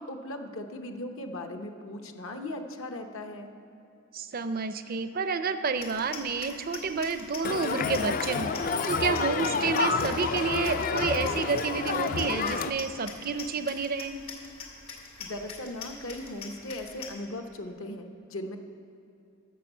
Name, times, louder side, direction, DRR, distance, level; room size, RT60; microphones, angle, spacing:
voice 1, 0.0-3.5 15.2-18.6, left 1 dB, 70° left, 5 dB, 0.9 m, -38 dB
voice 2, 4.1-14.1, right 4 dB, 45° right, 11 dB, 0.4 m, -30 dB
sound 1, 5.8-17.1, left 4 dB, 90° left, 2.1 m, -44 dB
Crowd, 7.4-12.7, left 4 dB, 40° left, 0.4 m, -29 dB
11.0 x 6.9 x 7.1 m, 2.7 s
head